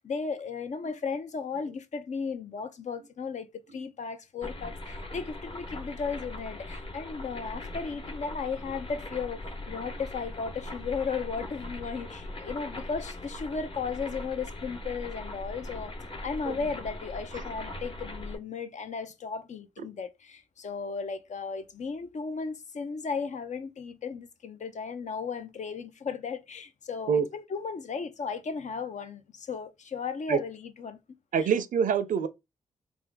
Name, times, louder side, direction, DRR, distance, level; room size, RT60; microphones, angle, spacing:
voice 1, 0.0-9.4 9.7-15.9 16.2-31.0 31.4-31.5, left 5 dB, 60° left, 0.6 m, -35 dB
sound 1, 4.4-18.4, left 1 dB, 40° left, 1.1 m, -40 dB
voice 2, 31.3-32.3, right 7 dB, 70° right, 0.5 m, -25 dB
3.4 x 2.5 x 3.5 m
cardioid pair, 55°, 14 cm